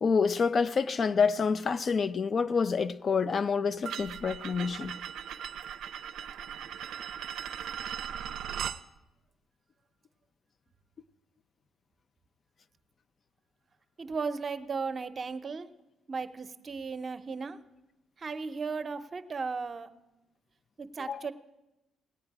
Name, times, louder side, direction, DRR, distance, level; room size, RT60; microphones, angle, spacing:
voice 1, 0.0-5.0 21.1-21.3, left 5 dB, 45° left, 0.4 m, -27 dB
sound 1, 3.8-8.8, right 9 dB, 80° right, 0.4 m, -38 dB
voice 2, 14.0-15.7 16.1-17.6 18.2-19.9 20.8-21.3, right 4 dB, 40° right, 0.7 m, -35 dB
18.5 x 8.8 x 4.7 m
cardioid pair, 90°, 0 cm